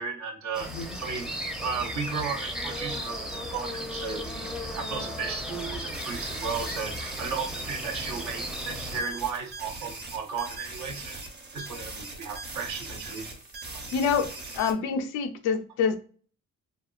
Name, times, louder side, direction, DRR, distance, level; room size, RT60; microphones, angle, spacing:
voice 1, 0.0-1.3 1.6-11.2 11.5-13.3 13.7-13.8, right 5 dB, 65° right, 0.9 m, -35 dB
sound 1, 0.5-9.0, equal, ahead, 0.5 m, -35 dB
sound 2, 5.9-14.7, right 3 dB, 35° right, 0.9 m, -40 dB
voice 2, 13.9-16.0, left 6 dB, 90° left, 0.5 m, -27 dB
3.3 x 2.3 x 2.3 m
cardioid pair, 90°, 30 cm